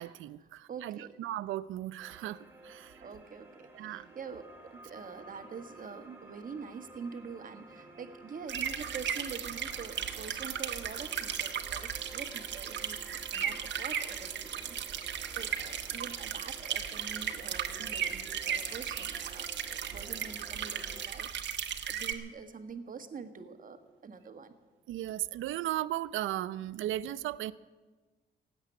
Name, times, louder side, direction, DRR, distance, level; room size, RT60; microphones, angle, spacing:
voice 1, 0.0-3.0 3.7-4.1 24.9-27.5, right 13 dB, 80° right, 17 dB, 0.6 m, -36 dB
voice 2, 0.7-1.1 3.0-13.0 13.3-24.5, right 5 dB, 45° right, 8 dB, 1.6 m, -45 dB
sound 1, 2.0-21.1, right 2 dB, 10° right, 2.3 m, -53 dB
sound 2, 8.5-22.1, right 8 dB, 65° right, 1.4 m, -36 dB
16.5 x 8.0 x 10.0 m, 1.3 s
cardioid pair, 90°, 20 cm